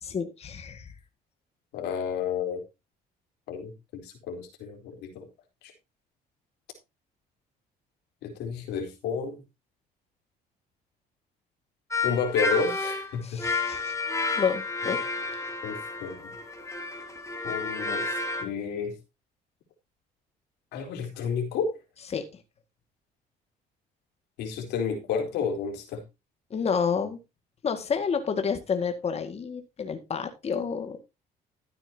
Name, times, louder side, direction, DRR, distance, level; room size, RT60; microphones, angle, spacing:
voice 1, 0.0-0.9 13.2-13.9 14.4-15.4 22.1-22.3 26.5-27.2 27.6-31.0, left 6 dB, 40° left, 7 dB, 2.0 m, -30 dB
voice 2, 1.7-2.6 3.5-5.3 8.2-9.4 12.0-13.4 14.9-15.0 15.6-16.3 17.4-18.1 18.4-18.9 20.7-21.7 24.4-26.0, left 6 dB, 85° left, 4 dB, 3.9 m, -31 dB
sound 1, 11.9-18.4, left 3 dB, 15° left, 2.9 m, -31 dB
13.5 x 9.1 x 2.8 m, 0.25 s
cardioid pair, 110°, 17 cm